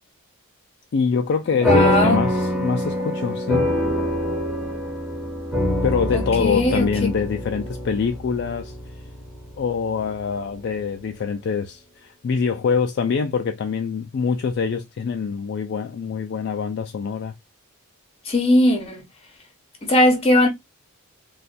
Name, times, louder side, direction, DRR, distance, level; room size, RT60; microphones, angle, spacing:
voice 1, 0.9-3.7 5.8-8.8 9.6-17.3, left 5 dB, 50° left, 0.3 m, -24 dB
voice 2, 1.6-2.2 6.1-6.9 18.3-19.0 19.9-20.5, left 1 dB, 25° left, 1.1 m, -18 dB
sound 1, 1.6-10.4, left 1 dB, 5° right, 1.2 m, -25 dB
4.1 x 2.3 x 2.4 m
head